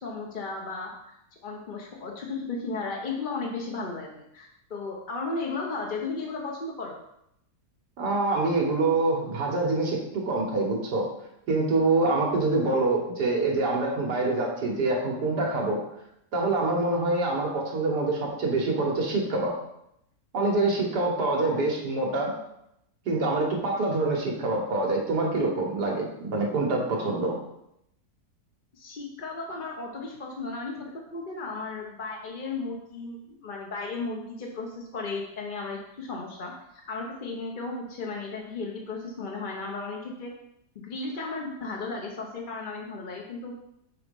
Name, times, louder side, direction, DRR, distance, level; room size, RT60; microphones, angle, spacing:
voice 1, 0.0-0.9 1.4-7.0 21.4-21.7 28.7-36.5 36.9-40.3 40.7-43.5, left 3 dB, 45° left, -1 dB, 0.7 m, -35 dB
voice 2, 8.0-11.1 11.5-15.8 16.3-19.6 20.3-22.4 23.1-27.4, right 2 dB, 85° right, -1 dB, 1.9 m, -25 dB
6.0 x 4.1 x 5.2 m, 0.79 s
omnidirectional pair, 1.7 m